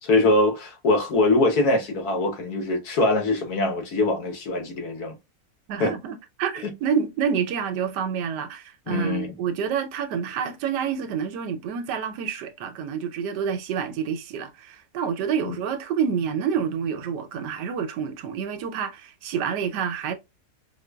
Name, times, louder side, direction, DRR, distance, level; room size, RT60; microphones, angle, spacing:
voice 1, 0.0-5.2 5.8-5.9 6.6-6.7 8.9-9.3 15.4-15.6, left 2 dB, 65° left, 1.4 m, -23 dB
voice 2, 5.7-20.2, right 7 dB, 90° right, 1.3 m, -28 dB
5.1 x 2.2 x 2.2 m
omnidirectional pair, 1.8 m